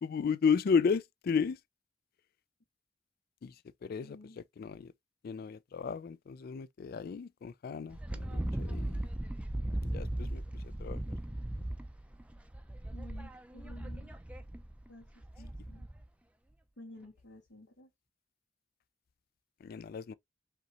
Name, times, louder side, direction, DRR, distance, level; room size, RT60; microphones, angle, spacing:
voice 1, 0.0-1.6 3.4-3.5 3.8-4.2 4.6-4.9 5.2-9.1 9.8-11.0 19.6-20.1, left 6 dB, 55° left, 0.3 m, -33 dB
voice 2, 4.0-4.4 12.9-14.1 14.9-15.1 15.4-15.9 16.8-17.9, left 1 dB, 85° left, 2.0 m, -52 dB
Wind, 7.9-16.0, right 1 dB, 5° right, 0.5 m, -38 dB
5.0 x 3.0 x 2.9 m
head